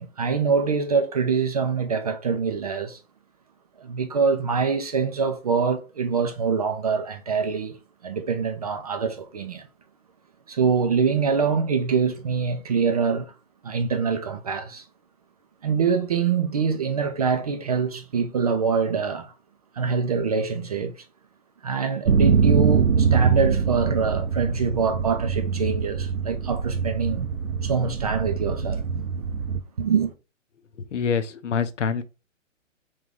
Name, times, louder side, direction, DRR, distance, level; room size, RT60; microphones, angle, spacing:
voice 1, 0.0-3.0 3.8-7.8 8.0-9.7 10.5-13.3 13.6-14.8 15.6-19.3 19.8-21.0 21.6-27.3 27.6-28.8 29.8-30.1, right 5 dB, 30° right, 0.4 m, -24 dB
sound 1, 22.1-29.6, right 6 dB, 75° right, 0.6 m, -23 dB
voice 2, 30.9-32.0, left 6 dB, 65° left, 0.7 m, -25 dB
3.7 x 3.2 x 3.5 m
figure-of-eight pair, 130°, 39 cm